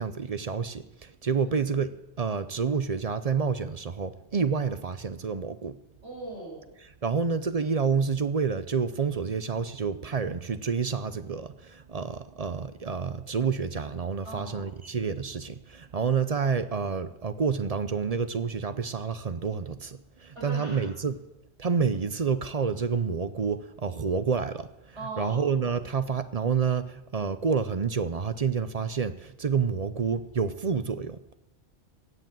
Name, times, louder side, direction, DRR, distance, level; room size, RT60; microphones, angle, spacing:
voice 1, 0.0-5.8 7.0-21.2 21.6-31.2, right 5 dB, 40° right, 0.6 m, -29 dB
voice 2, 6.0-6.7 14.2-14.7 20.3-20.9 24.9-25.5, right 2 dB, 80° right, 5.9 m, -40 dB
16.0 x 8.1 x 7.6 m
omnidirectional pair, 1.2 m